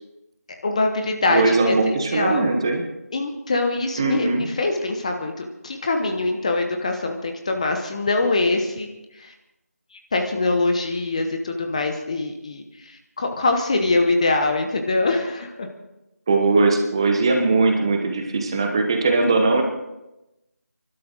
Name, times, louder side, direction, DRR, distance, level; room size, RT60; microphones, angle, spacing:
voice 1, 0.6-2.5 3.1-8.9 9.2-9.3 9.9-15.7 19.2-19.3, left 2 dB, 25° left, 4 dB, 1.0 m, -23 dB
voice 2, 1.3-2.8 4.0-4.5 16.3-19.6, right 3 dB, 20° right, 3 dB, 1.0 m, -20 dB
25.0 x 12.0 x 3.9 m, 0.97 s
figure-of-eight pair, 170°, 9 cm